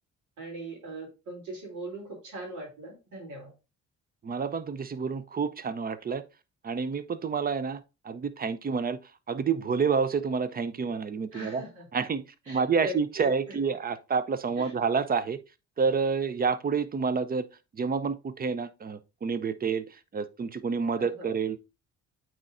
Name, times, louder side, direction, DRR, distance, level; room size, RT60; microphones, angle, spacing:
voice 1, 0.4-3.5 11.3-11.8 12.5-13.6 14.6-14.7 21.0-21.3, right 1 dB, 80° right, 2.9 m, -40 dB
voice 2, 4.2-6.2 6.6-9.0 9.3-11.6 11.9-15.4 15.8-17.5 17.7-21.6, right 5 dB, 30° right, 0.5 m, -29 dB
8.6 x 4.3 x 2.5 m
cardioid pair, 90°, 30 cm